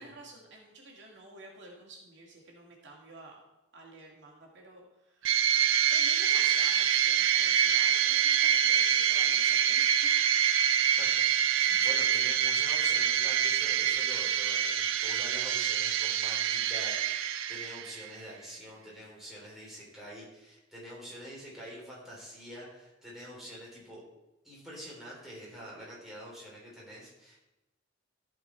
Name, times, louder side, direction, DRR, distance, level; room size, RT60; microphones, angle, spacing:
voice 1, 0.0-3.4 3.7-5.4 5.9-10.5, right 2 dB, 65° right, -2 dB, 2.3 m, -50 dB
sound 1, 5.2-18.1, right 9 dB, 85° right, 0.5 m, -26 dB
voice 2, 10.8-11.1 11.4-24.0 24.4-27.4, equal, ahead, -6 dB, 3.5 m, -46 dB
14.5 x 5.3 x 4.5 m, 0.99 s
head